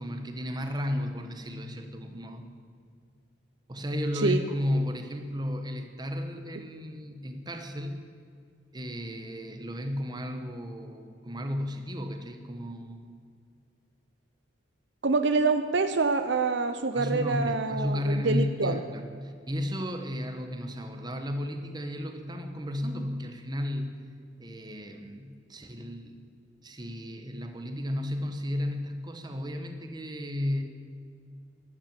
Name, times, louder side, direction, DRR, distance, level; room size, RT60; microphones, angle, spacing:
voice 1, 0.0-2.5 3.7-8.0 8.7-13.2 16.9-24.0 24.4-26.2 26.6-30.6, left 1 dB, 20° right, 6 dB, 1.2 m, -33 dB
voice 2, 15.0-18.8, right 4 dB, 60° right, 8 dB, 0.7 m, -26 dB
12.5 x 12.0 x 7.5 m, 2.2 s
head